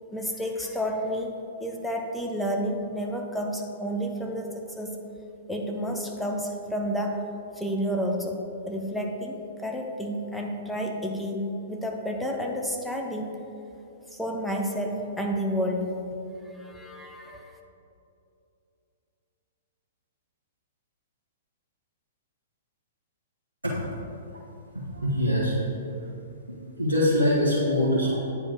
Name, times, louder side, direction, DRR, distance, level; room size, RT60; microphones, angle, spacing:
voice 1, 0.1-5.0 5.5-7.3 7.6-8.4 8.7-13.4 14.2-16.0 16.5-17.5, equal, ahead, 1 dB, 0.7 m, -30 dB
voice 2, 24.7-25.6 26.8-28.2, left 1 dB, 85° right, -8 dB, 1.3 m, -23 dB
9.4 x 3.4 x 5.2 m, 2.8 s
figure-of-eight pair, 110°, 0 cm